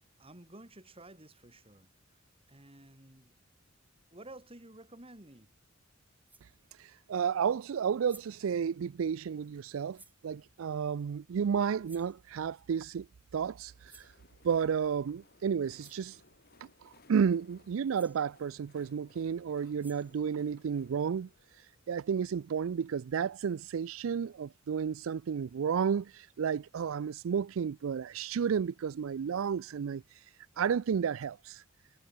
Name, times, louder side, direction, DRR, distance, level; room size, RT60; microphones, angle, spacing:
voice 1, 0.0-2.2 2.5-3.3 4.1-5.5 6.9-7.0, right 2 dB, 30° right, 3.2 m, -53 dB
sound 1, 5.6-5.7 6.3-6.6 7.8-7.9 8.1-8.5 9.9-10.3 11.8-12.2 13.8-14.2 15.4-15.5 15.8-16.1 17.6-17.7 17.9-18.3 19.6-20.2, right 3 dB, 10° right, 5.4 m, -58 dB
voice 2, 6.8-13.1 13.3-14.1 14.4-16.2 16.8-21.3 21.9-30.2 30.6-31.6, right 7 dB, 75° right, 0.4 m, -32 dB
Train, 13.4-23.0, left 3 dB, 50° left, 5.6 m, -64 dB
head